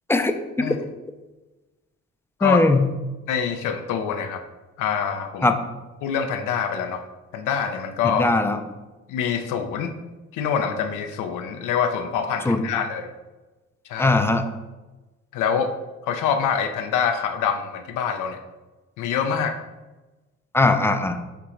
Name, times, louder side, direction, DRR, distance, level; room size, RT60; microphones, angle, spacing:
voice 1, 0.1-0.7 2.4-2.8 5.4-5.6 8.0-8.6 12.5-12.6 14.0-14.4 20.5-21.2, left 2 dB, 10° left, 7 dB, 0.3 m, -20 dB
voice 2, 3.3-4.4 4.8-5.5 6.0-7.0 7.3-8.3 9.1-9.9 10.3-13.1 13.9-14.2 15.3-15.7 16.0-18.4 19.0-19.6, left 7 dB, 90° left, 6 dB, 0.5 m, -25 dB
4.6 x 2.9 x 3.7 m, 1.1 s
cardioid pair, 90°, 30 cm